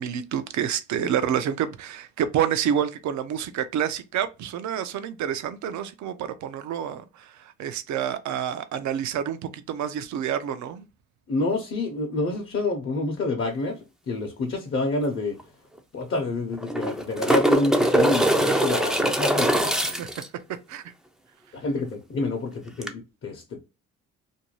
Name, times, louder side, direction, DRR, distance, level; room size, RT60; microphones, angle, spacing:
voice 1, 0.0-10.9 19.8-20.1 20.7-20.9, right 9 dB, 70° right, 0.5 m, -28 dB
voice 2, 11.3-13.8 14.1-15.4 15.9-20.1 21.5-23.6, left 2 dB, 45° left, 0.7 m, -28 dB
sound 1, 15.0-15.1 15.4-15.5 16.5-20.3 22.8-22.9, right 1 dB, ahead, 0.4 m, -22 dB
2.6 x 2.2 x 3.0 m
cardioid pair, 90°, 30 cm